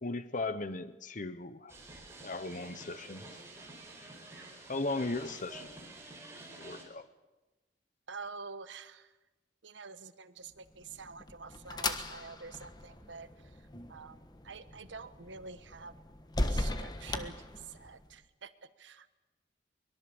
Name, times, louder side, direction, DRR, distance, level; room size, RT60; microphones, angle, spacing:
voice 1, 0.0-1.8 2.2-3.3 4.7-5.7 6.5-7.1, left 2 dB, 45° left, 12 dB, 1.0 m, -37 dB
sound 1, 1.7-6.8, right 2 dB, 15° right, 4.7 m, -49 dB
voice 2, 8.1-9.2 9.6-16.0 16.4-19.2, right 4 dB, 80° right, 12 dB, 1.2 m, -48 dB
sound 2, 10.7-18.1, left 2 dB, 20° left, 1.3 m, -38 dB
23.0 x 22.0 x 7.1 m, 1.1 s
head